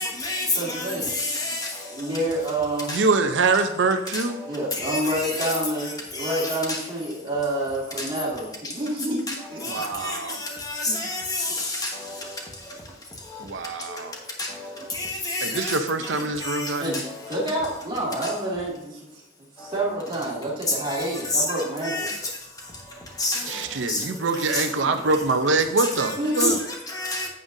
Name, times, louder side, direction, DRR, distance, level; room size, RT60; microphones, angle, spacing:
voice 1, 0.0-1.8 2.9-3.0 4.1-4.4 4.7-5.5 6.1-6.8 8.0-8.1 9.3-9.4 9.6-12.3 13.3-13.4 14.4-15.8 16.4-17.1 19.6-19.7 20.9-21.0 21.3-22.2 23.2-24.0 24.5-24.6 25.8-26.5 26.9-27.3, left 2 dB, 20° left, 0 dB, 1.4 m, -29 dB
voice 2, 0.6-1.1 1.9-2.9 4.4-8.5 8.7-9.2 9.5-9.6 10.9-11.1 16.8-19.2 19.6-21.9 26.2-26.6, right 1 dB, 25° right, -5 dB, 2.2 m, -28 dB
voice 3, 2.9-4.4 9.7-10.4 13.4-14.1 15.4-17.0 23.5-26.6, right 3 dB, 85° right, 7 dB, 0.7 m, -24 dB
8.8 x 7.8 x 2.7 m, 0.90 s
head